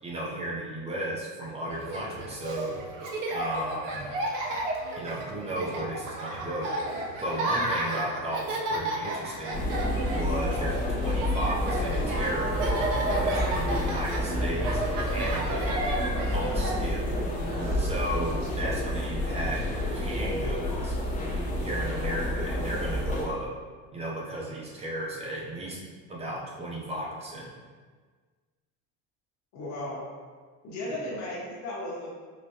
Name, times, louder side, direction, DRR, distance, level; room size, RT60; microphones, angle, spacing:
voice 1, 0.0-2.8 3.3-4.1 5.0-6.8 7.2-9.7 10.1-12.6 13.2-15.8 16.3-17.1 17.8-21.0 21.6-23.5 23.9-25.8 26.1-27.5, right 1 dB, 15° right, -4 dB, 0.6 m, -34 dB
Laughter, 1.7-18.5, right 2 dB, 60° right, 0.7 m, -33 dB
sound 1, 9.5-23.2, left 1 dB, 20° left, 0.7 m, -29 dB
voice 2, 22.0-22.5 29.5-30.0 30.6-32.1, left 1 dB, 50° left, -5 dB, 1.0 m, -36 dB
4.9 x 2.2 x 2.8 m, 1.5 s
cardioid pair, 130°, 36 cm